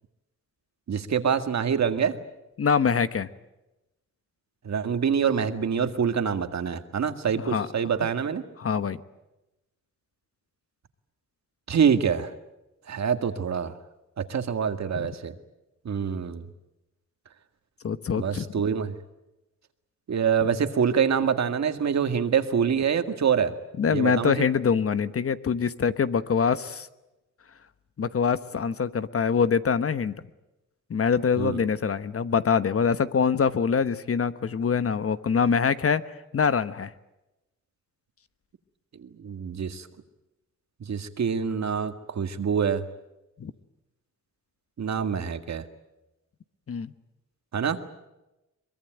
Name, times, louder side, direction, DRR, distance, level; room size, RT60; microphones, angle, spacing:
voice 1, 0.9-2.2 4.6-8.4 11.7-12.3 12.9-13.8 14.2-15.3 15.8-16.4 18.2-18.9 20.1-23.5 23.9-24.5 31.4-31.6 39.0-39.9 40.9-42.8 44.8-45.7 47.5-47.8, right 7 dB, 60° right, 8 dB, 2.0 m, -25 dB
voice 2, 2.6-3.3 7.3-7.7 8.6-9.0 14.9-15.1 17.8-18.4 23.8-26.9 28.0-30.1 30.9-36.0 36.3-36.9 43.4-43.5 46.7-46.9, left 6 dB, 50° left, 13 dB, 1.1 m, -24 dB
23.5 x 22.0 x 9.2 m, 0.97 s
cardioid pair, 80°, 30 cm